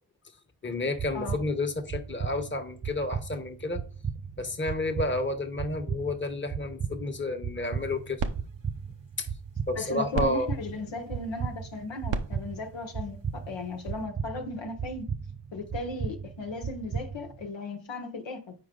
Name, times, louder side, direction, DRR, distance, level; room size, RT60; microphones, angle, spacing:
voice 1, 0.6-3.8 4.4-8.2 9.2-9.3 9.7-10.5, left 2 dB, 25° left, 1.2 m, -31 dB
sound 1, 0.9-17.5, right 6 dB, 30° right, 0.6 m, -37 dB
sound 2, 7.6-14.0, right 5 dB, 75° right, 0.9 m, -39 dB
voice 2, 9.7-15.1 15.5-18.5, left 3 dB, 75° left, 1.2 m, -36 dB
6.6 x 4.6 x 3.8 m
cardioid pair, 40°, 45 cm